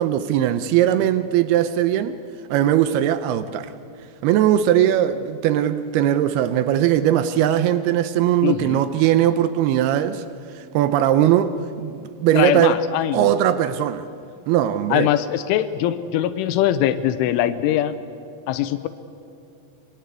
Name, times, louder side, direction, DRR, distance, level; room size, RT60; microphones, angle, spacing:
voice 1, 0.0-2.2 2.5-3.7 4.2-10.2 10.5-12.8 13.1-14.1 14.5-15.1, right 11 dB, 90° right, 2.2 m, -19 dB
voice 2, 8.4-8.9 12.3-13.3 14.9-18.0 18.5-18.9, left 12 dB, 85° left, 3.3 m, -22 dB
28.0 x 24.0 x 8.3 m
omnidirectional pair, 5.5 m